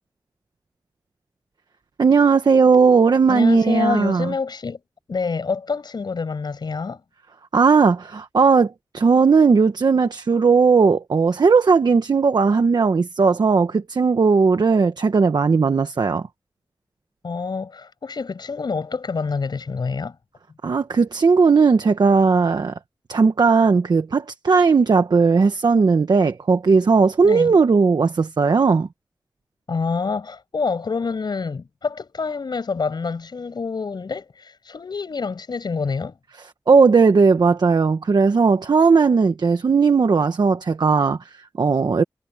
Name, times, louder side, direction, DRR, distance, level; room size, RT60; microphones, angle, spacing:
voice 1, 2.0-4.3 7.5-16.3 20.6-22.7 23.1-28.9 36.7-42.0, right 5 dB, 80° right, 1.2 m, -17 dB
voice 2, 3.3-4.8 5.1-7.0 17.2-20.2 27.2-27.5 29.7-36.2, left 4 dB, 85° left, 7.5 m, -27 dB
wide cardioid pair, 75°, 7 cm